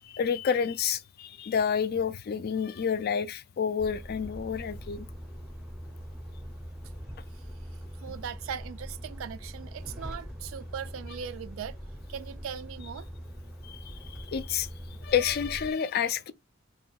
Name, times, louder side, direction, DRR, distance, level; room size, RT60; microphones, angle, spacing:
voice 1, 0.0-5.1 13.6-16.3, left 7 dB, 50° left, 0.4 m, -29 dB
Truck, 3.8-15.7, equal, 5° right, 0.6 m, -42 dB
voice 2, 8.0-11.8 12.1-13.1, right 7 dB, 75° right, 0.3 m, -39 dB
3.0 x 2.8 x 4.5 m
head